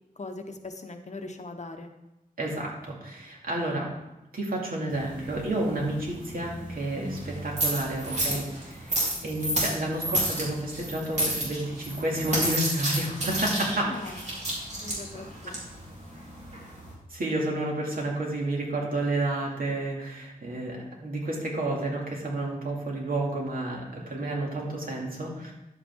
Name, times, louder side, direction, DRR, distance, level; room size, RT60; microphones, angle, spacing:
voice 1, 0.2-1.9 13.8-14.3 14.8-15.7, left 3 dB, 50° left, 6 dB, 0.9 m, -40 dB
voice 2, 2.4-3.9 4.3-13.9 17.1-25.5, right 1 dB, 70° right, -2 dB, 2.5 m, -30 dB
sound 1, 4.9-16.9, right 1 dB, 50° right, 3.3 m, -31 dB
10.5 x 8.2 x 3.6 m, 0.94 s
wide cardioid pair, 105°, 15 cm